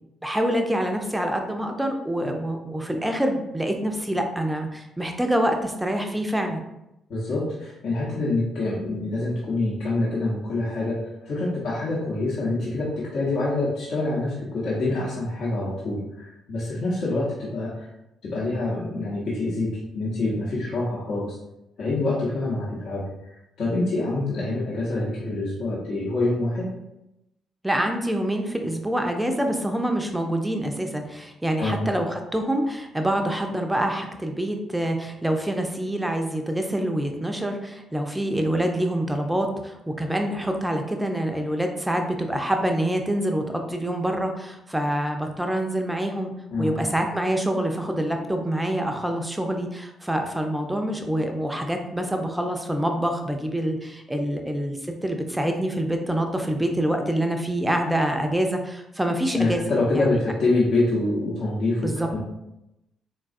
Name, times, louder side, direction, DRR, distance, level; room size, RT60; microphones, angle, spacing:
voice 1, 0.2-6.6 27.6-46.3 46.6-59.6 59.9-60.2 61.8-62.1, right 1 dB, 10° right, 4 dB, 0.5 m, -26 dB
voice 2, 7.1-17.9 18.2-21.4 21.8-26.7 31.6-31.9 46.5-46.8 59.3-62.2, left 2 dB, 60° left, -8 dB, 0.8 m, -26 dB
3.8 x 2.3 x 2.5 m, 0.90 s
figure-of-eight pair, 40°, 0 cm